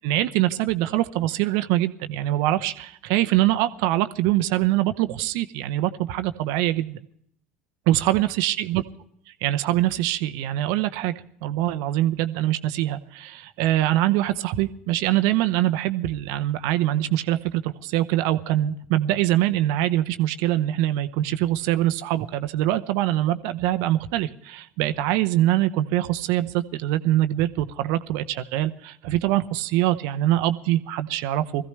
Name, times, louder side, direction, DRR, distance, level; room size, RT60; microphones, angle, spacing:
voice 1, 0.0-7.0 7.9-8.8 9.4-11.1 11.4-31.6, right 14 dB, 65° right, 10 dB, 0.8 m, -23 dB
21.0 x 15.0 x 3.3 m, 0.68 s
hypercardioid pair, 65°, 6 cm